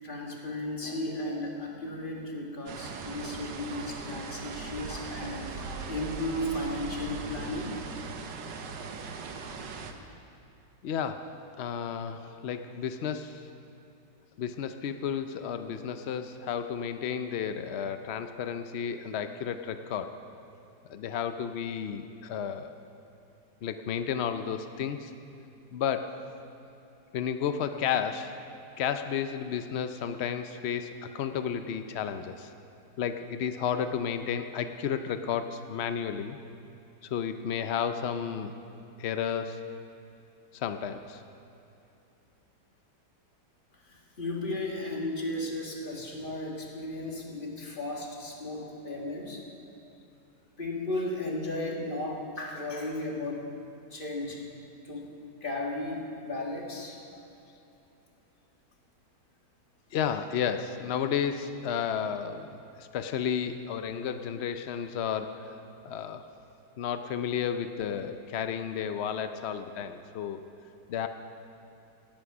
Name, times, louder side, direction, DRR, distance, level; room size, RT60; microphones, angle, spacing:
voice 1, 0.0-7.8 43.8-49.4 50.6-53.5 53.9-54.5 54.8-55.1 55.4-57.0 69.3-69.4, left 1 dB, 30° left, -1 dB, 1.9 m, -35 dB
sound 1, 2.7-9.9, right 4 dB, 85° right, 1.6 m, -39 dB
voice 2, 10.8-11.3 11.6-13.4 14.4-20.1 20.9-22.7 23.6-25.1 25.7-26.2 27.1-28.4 28.8-32.5 33.0-36.4 37.0-38.5 39.0-39.6 40.5-41.2 48.6-48.7 57.1-57.3 59.9-65.5 65.8-66.2 66.8-70.4 70.9-71.1, left 8 dB, 85° left, 9 dB, 0.5 m, -32 dB
17.5 x 8.8 x 6.0 m, 2.8 s
omnidirectional pair, 1.8 m